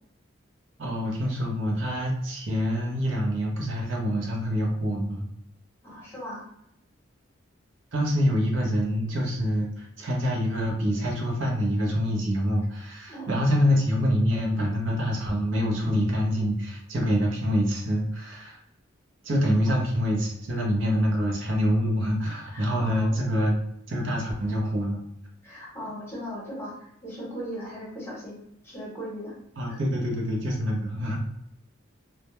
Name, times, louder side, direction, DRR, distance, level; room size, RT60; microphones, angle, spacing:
voice 1, 0.8-5.3 7.9-18.6 19.2-23.6 23.9-25.0 29.6-31.2, equal, 70° right, -1 dB, 0.6 m, -26 dB
voice 2, 5.8-6.4 13.1-13.3 19.7-19.8 22.5-23.2 25.4-29.4 29.7-29.8, equal, 10° left, -6 dB, 0.9 m, -38 dB
2.1 x 2.1 x 2.9 m, 0.76 s
head